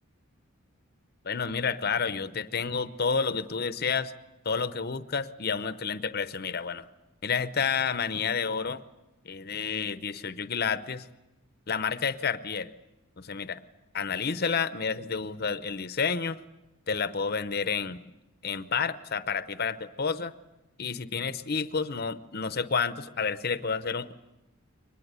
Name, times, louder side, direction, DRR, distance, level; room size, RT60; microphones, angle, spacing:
voice 1, 1.2-4.1 4.4-6.9 7.2-8.8 9.2-11.1 11.7-12.7 13.2-13.6 13.9-16.4 16.9-18.0 18.4-20.3 20.8-24.1, left 5 dB, 45° left, 12 dB, 0.7 m, -30 dB
24.0 x 20.0 x 8.1 m, 0.99 s
head